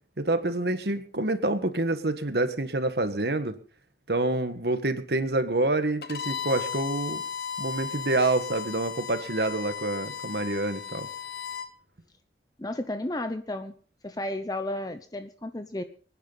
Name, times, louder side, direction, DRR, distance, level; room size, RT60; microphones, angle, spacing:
voice 1, 0.2-3.6 4.1-7.2 7.6-11.1, right 2 dB, 70° right, 9 dB, 1.6 m, -27 dB
Bowed string instrument, 6.0-11.7, left 7 dB, 60° left, 1.3 m, -35 dB
voice 2, 12.6-13.8 14.0-15.8, left 1 dB, 20° left, 9 dB, 0.8 m, -33 dB
24.5 x 10.0 x 4.1 m, 0.42 s
head